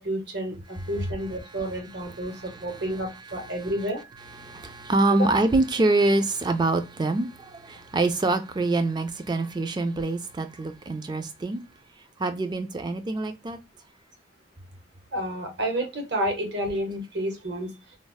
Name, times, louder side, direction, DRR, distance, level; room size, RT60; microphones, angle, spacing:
voice 1, 0.0-4.0 5.1-5.3 15.1-17.7, right 1 dB, 65° right, 0.9 m, -30 dB
voice 2, 2.1-2.8 3.3-3.7 4.4-11.6 12.2-13.6, right 2 dB, 25° right, 0.3 m, -25 dB
3.1 x 2.0 x 2.2 m
head